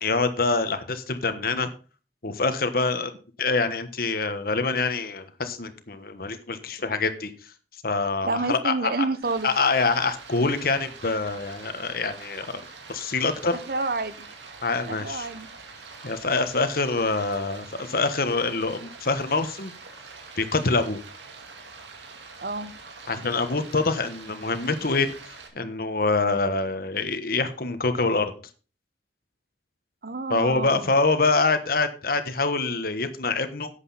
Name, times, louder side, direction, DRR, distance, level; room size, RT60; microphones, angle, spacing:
voice 1, 0.0-1.7 2.2-3.1 3.4-7.3 7.8-8.9 9.4-12.5 12.9-13.6 14.6-15.3 16.0-19.7 20.4-21.0 23.1-25.1 25.5-28.3 30.3-33.7, left 3 dB, 55° left, 9 dB, 1.3 m, -25 dB
voice 2, 8.2-9.5 13.7-14.3 14.9-15.5 22.4-22.7 30.0-30.9, right 3 dB, 55° right, 13 dB, 0.9 m, -28 dB
Stream, 9.2-25.5, right 4 dB, 85° right, 2.3 m, -44 dB
11.5 x 8.2 x 4.2 m, 0.35 s
head